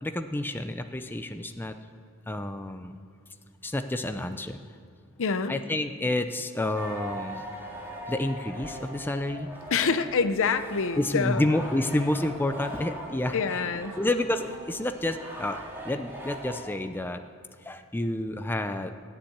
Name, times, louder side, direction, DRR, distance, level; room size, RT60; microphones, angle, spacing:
voice 1, 0.0-1.7 2.3-3.0 3.6-4.6 5.5-7.5 8.1-9.5 11.0-13.4 14.0-15.6 15.8-17.2 17.6-18.9, left 1 dB, 10° left, 8 dB, 0.5 m, -29 dB
voice 2, 5.2-5.6 9.7-11.4 13.3-14.0, left 5 dB, 60° left, 11 dB, 0.7 m, -26 dB
sound 1, 6.8-16.6, right 1 dB, 10° right, 2.1 m, -40 dB
14.5 x 7.2 x 9.4 m, 2.2 s
head